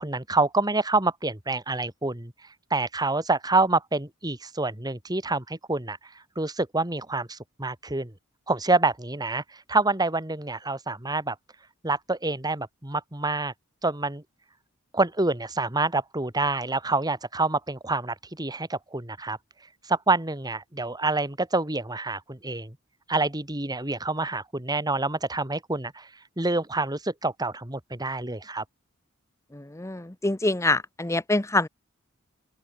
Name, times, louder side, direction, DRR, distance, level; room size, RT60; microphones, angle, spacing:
voice 1, 0.0-2.3 2.7-6.0 6.4-8.1 8.5-9.4 9.7-11.4 11.8-13.5 13.8-14.2 14.9-19.4 19.9-22.7 23.1-26.1 26.4-28.6, right 3 dB, 20° right, 2.5 m, -27 dB
voice 2, 29.5-31.7, left 2 dB, 15° left, 0.9 m, -25 dB
open air
head